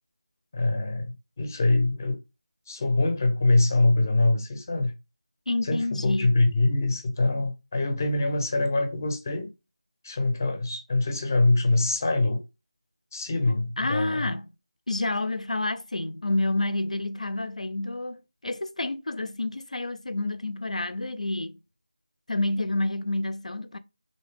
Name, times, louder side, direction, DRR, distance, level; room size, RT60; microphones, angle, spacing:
voice 1, 0.5-2.2 2.7-4.9 5.6-9.5 10.0-12.4 13.1-14.3, left 2 dB, 25° left, 0.5 m, -24 dB
voice 2, 5.5-6.3 13.8-14.4 14.9-21.6 22.3-23.8, left 2 dB, 85° left, 0.4 m, -29 dB
3.2 x 2.7 x 3.2 m
figure-of-eight pair, 170°, 4 cm